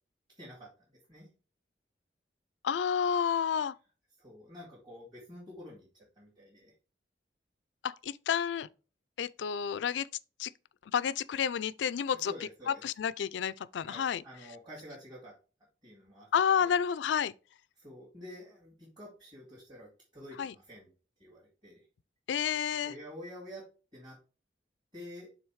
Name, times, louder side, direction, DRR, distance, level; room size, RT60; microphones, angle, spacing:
voice 1, 0.4-1.3 4.2-6.7 12.3-12.8 13.8-15.4 15.8-16.3 16.6-16.8 17.8-20.9 21.2-21.9 22.8-23.6 23.9-24.2 24.9-25.3, left 1 dB, 25° right, 2.4 m, -49 dB
voice 2, 2.6-3.7 7.8-8.7 9.2-10.1 10.4-10.5 10.9-12.3 12.7-14.2 16.3-17.3 20.4-20.5 22.3-22.9, left 8 dB, 80° left, 0.3 m, -30 dB
6.3 x 3.8 x 4.7 m
head